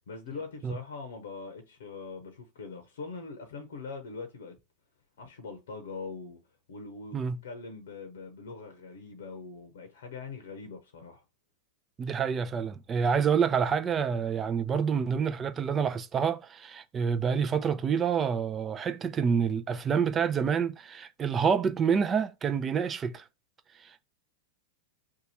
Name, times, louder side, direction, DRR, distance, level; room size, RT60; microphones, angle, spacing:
voice 1, 0.1-4.6 5.2-6.4 6.7-11.2, left 4 dB, 80° left, 0.7 m, -42 dB
voice 2, 12.0-23.2 23.8-24.0, right 6 dB, 25° right, 0.5 m, -28 dB
2.8 x 2.3 x 4.2 m
hypercardioid pair, 105°, 0 cm